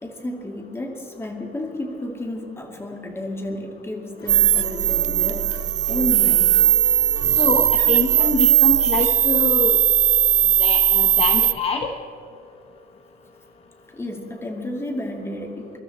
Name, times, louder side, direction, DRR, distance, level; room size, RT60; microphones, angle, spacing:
voice 1, 0.0-6.7 13.9-15.8, left 1 dB, 15° left, 2 dB, 2.4 m, -32 dB
sound 1, 4.2-9.4, left 3 dB, 70° left, 2.8 m, -39 dB
sound 2, 4.3-11.5, right 10 dB, 45° right, 0.4 m, -18 dB
voice 2, 7.4-9.8 10.6-11.9, left 4 dB, 35° left, 5 dB, 1.1 m, -25 dB
24.0 x 12.5 x 4.2 m, 2.7 s
cardioid pair, 110°, 17 cm